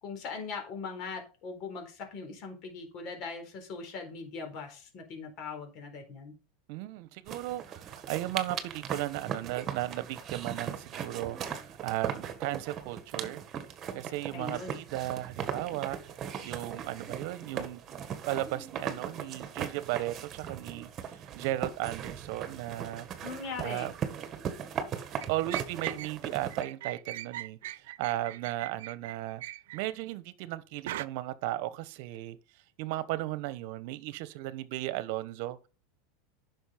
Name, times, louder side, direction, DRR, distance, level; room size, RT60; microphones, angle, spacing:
voice 1, 0.0-6.3 14.3-14.8 23.2-23.9, left 4 dB, 45° left, 4.1 m, -40 dB
voice 2, 6.7-13.4 13.9-16.0 16.4-18.0 18.2-23.1 23.6-23.9 25.3-29.4 29.7-32.4 32.8-35.7, right 16 dB, 60° right, 1.1 m, -35 dB
sound 1, 7.3-26.6, right 8 dB, 35° right, 1.7 m, -39 dB
sound 2, 25.2-26.2 26.5-29.9 30.9-31.1, right 15 dB, 80° right, 0.4 m, -40 dB
10.5 x 6.3 x 5.1 m
supercardioid pair, 125°, 0 cm